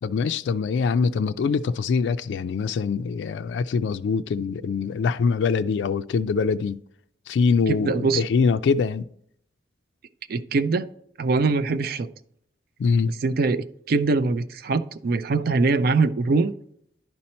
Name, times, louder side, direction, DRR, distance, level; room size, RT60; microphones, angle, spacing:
voice 1, 0.0-6.8 7.3-9.1 12.8-13.1, left 5 dB, 75° left, 0.3 m, -23 dB
voice 2, 7.7-8.2 10.3-10.9 11.2-12.1 13.1-16.5, right 3 dB, 60° right, 0.4 m, -23 dB
10.5 x 4.4 x 4.2 m
head